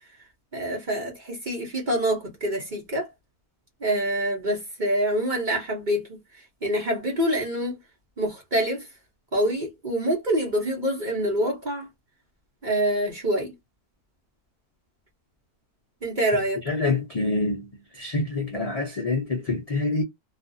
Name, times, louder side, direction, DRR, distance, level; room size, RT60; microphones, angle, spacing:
voice 1, 0.5-3.1 3.8-7.8 8.2-8.9 9.3-11.9 12.6-13.5 16.0-16.7, right 1 dB, 40° right, 0.7 m, -26 dB
voice 2, 16.7-17.7 17.9-20.0, left 3 dB, 60° left, 0.4 m, -26 dB
2.5 x 2.3 x 2.6 m
omnidirectional pair, 1.6 m